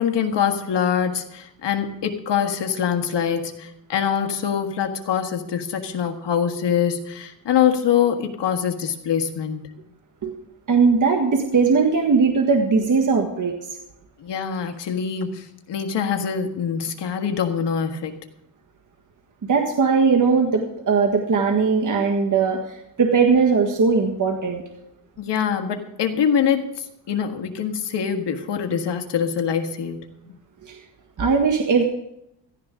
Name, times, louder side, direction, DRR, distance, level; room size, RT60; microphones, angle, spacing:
voice 1, 0.0-9.7 14.2-18.2 25.2-30.1, left 8 dB, 70° left, 5 dB, 1.7 m, -24 dB
voice 2, 10.7-13.8 19.5-24.6 30.6-30.8 31.2-31.8, right 5 dB, 45° right, 1 dB, 1.7 m, -19 dB
16.5 x 14.5 x 3.8 m, 0.82 s
cardioid pair, 110°, 44 cm